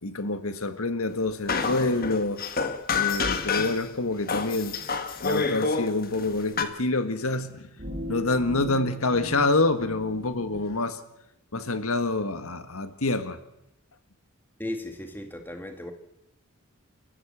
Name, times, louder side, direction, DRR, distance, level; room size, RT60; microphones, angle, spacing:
voice 1, 0.0-2.4 2.9-4.7 5.2-7.7 8.1-11.0 11.5-13.4, left 2 dB, 75° left, 1.6 m, -27 dB
sound 1, 1.5-3.8 4.3-6.6, left 5 dB, 40° left, 1.5 m, -28 dB
sound 2, 7.8-10.6, equal, 35° right, 4.8 m, -38 dB
voice 2, 14.6-15.9, left 1 dB, 10° left, 1.8 m, -36 dB
29.5 x 14.5 x 7.4 m
head